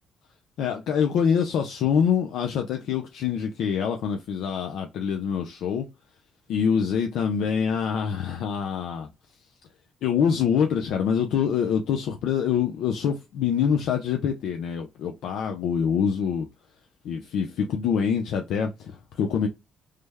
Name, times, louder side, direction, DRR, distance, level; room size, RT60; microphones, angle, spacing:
voice 1, 0.6-5.9 6.5-9.1 10.0-16.5 17.0-19.5, left 7 dB, 85° left, 0.4 m, -25 dB
3.2 x 2.0 x 3.3 m
cardioid pair, 90°, 0 cm